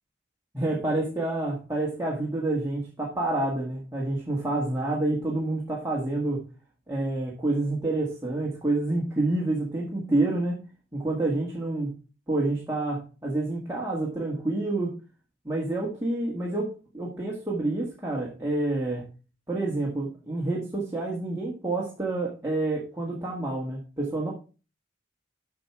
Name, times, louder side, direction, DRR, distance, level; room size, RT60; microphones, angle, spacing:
voice 1, 0.5-6.4 6.9-10.6 10.9-12.0 12.3-14.9 15.5-19.1 19.5-24.3, right 2 dB, 15° right, -4 dB, 1.7 m, -28 dB
7.6 x 6.0 x 4.7 m, 0.34 s
head